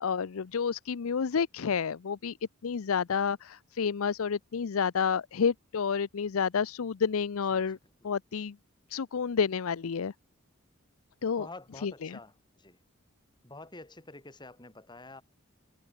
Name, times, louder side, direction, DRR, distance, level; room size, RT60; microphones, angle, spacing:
voice 1, 0.0-2.3 2.6-7.8 8.0-8.5 8.9-10.1 11.2-11.5 11.8-12.1, left 6 dB, 80° left, 0.5 m, -30 dB
voice 2, 7.4-7.8 11.4-12.8 13.4-15.2, left 2 dB, 20° left, 3.0 m, -48 dB
head